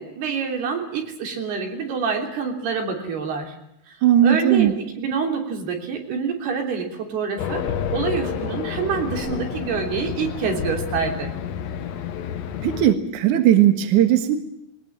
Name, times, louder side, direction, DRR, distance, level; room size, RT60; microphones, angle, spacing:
voice 1, 0.0-3.6 3.9-4.0 4.2-11.3, right 6 dB, 80° right, 3 dB, 5.3 m, -27 dB
voice 2, 4.0-4.8 12.6-14.4, right 11 dB, 60° right, 7 dB, 2.7 m, -17 dB
Race car auto racing, 7.4-12.9, left 9 dB, 70° left, 1.7 m, -29 dB
21.5 x 20.5 x 8.7 m, 0.79 s
omnidirectional pair, 4.6 m